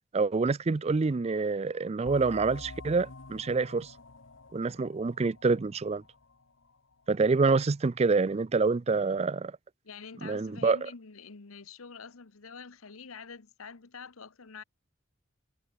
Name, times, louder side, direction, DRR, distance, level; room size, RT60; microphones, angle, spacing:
voice 1, 0.1-3.9 4.5-6.0 7.1-9.5 10.2-10.9, right 4 dB, 30° right, 0.4 m, -27 dB
sound 1, 2.0-7.3, left 3 dB, 60° left, 1.3 m, -48 dB
voice 2, 9.8-14.6, left 5 dB, 85° left, 1.1 m, -46 dB
head